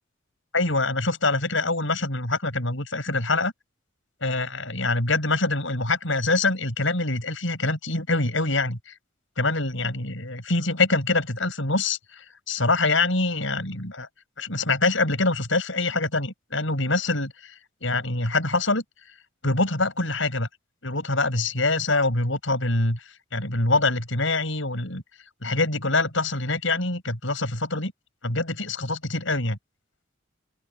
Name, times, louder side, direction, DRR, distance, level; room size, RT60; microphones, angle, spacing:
voice 1, 0.5-3.5 4.2-8.9 9.4-14.1 14.4-17.5 17.8-18.8 19.4-20.5 20.8-25.0 25.4-27.9 28.2-29.6, left 2 dB, 70° left, 7.1 m, -25 dB
open air
head